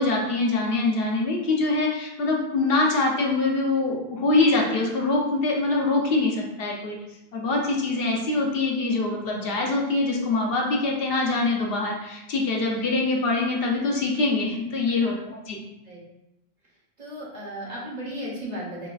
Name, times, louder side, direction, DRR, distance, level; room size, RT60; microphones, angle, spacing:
voice 1, 0.0-7.0 7.3-15.6, left 3 dB, 70° left, 0 dB, 0.8 m, -24 dB
voice 2, 17.0-18.9, equal, 45° right, -5 dB, 0.9 m, -35 dB
3.9 x 2.3 x 2.3 m, 0.90 s
omnidirectional pair, 1.1 m